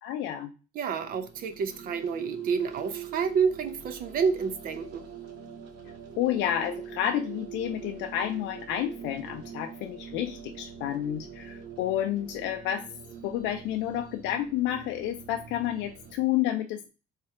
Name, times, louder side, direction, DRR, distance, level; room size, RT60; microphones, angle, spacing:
voice 1, 0.0-0.5 6.2-12.9 13.2-16.9, left 11 dB, 85° left, 0.4 m, -30 dB
voice 2, 0.7-5.1, right 6 dB, 50° right, 0.6 m, -29 dB
sound 1, 0.9-16.2, right 7 dB, 70° right, 1.2 m, -43 dB
3.6 x 3.2 x 2.8 m
cardioid pair, 155°, 19 cm